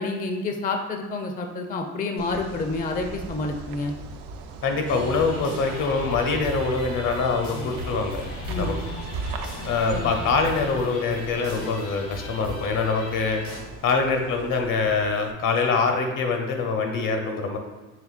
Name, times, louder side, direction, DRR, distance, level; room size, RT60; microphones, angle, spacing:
voice 1, 0.0-3.9 8.5-8.8 9.9-10.1, left 3 dB, 25° left, 4 dB, 0.4 m, -29 dB
sound 1, 2.2-15.3, right 3 dB, 75° right, 0.5 m, -39 dB
voice 2, 4.6-8.2 8.5-8.8 9.6-13.4 13.8-17.6, left 4 dB, 65° left, 3 dB, 0.8 m, -24 dB
sound 2, 4.9-13.6, left 1 dB, 85° left, 1.4 m, -37 dB
4.9 x 3.2 x 2.4 m, 1.2 s
supercardioid pair, 70°, 35 cm